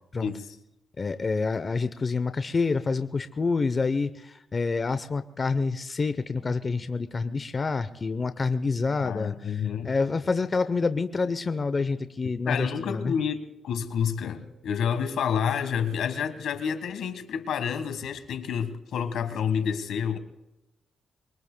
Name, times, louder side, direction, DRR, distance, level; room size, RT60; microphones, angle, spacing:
voice 1, 1.0-13.2, left 4 dB, 40° left, 11 dB, 0.7 m, -27 dB
voice 2, 9.0-9.9 12.5-20.2, left 7 dB, 85° left, 10 dB, 1.4 m, -29 dB
24.5 x 23.5 x 2.2 m, 0.94 s
cardioid pair, 90°, 0 cm